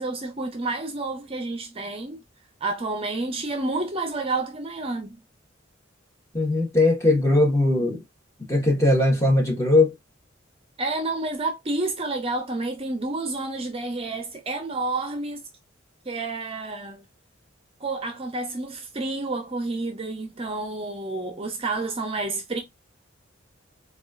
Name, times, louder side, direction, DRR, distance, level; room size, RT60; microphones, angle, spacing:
voice 1, 0.0-2.2 2.6-5.2 10.8-15.4 16.1-17.0 17.8-22.6, right 2 dB, 30° right, 0.6 m, -29 dB
voice 2, 6.3-8.0 8.5-9.9, left 2 dB, 15° left, 1.1 m, -20 dB
4.0 x 2.4 x 2.3 m
head